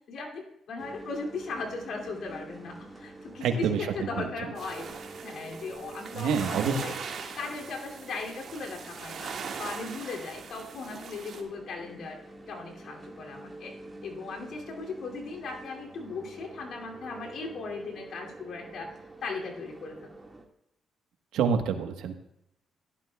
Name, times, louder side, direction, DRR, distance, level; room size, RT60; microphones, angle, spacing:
voice 1, 0.1-6.9 7.3-12.2 12.5-13.7 14.0-18.9 19.2-20.1, left 4 dB, 65° left, 0 dB, 2.7 m, -38 dB
sound 1, 0.8-20.5, right 2 dB, 15° right, 1.8 m, -47 dB
voice 2, 3.4-3.8 4.2-4.3 6.1-6.8 21.3-22.2, right 6 dB, 85° right, 6 dB, 1.2 m, -27 dB
sound 2, 4.6-11.4, right 5 dB, 60° right, 1.8 m, -40 dB
16.0 x 11.5 x 2.3 m, 0.81 s
cardioid pair, 90°, 0 cm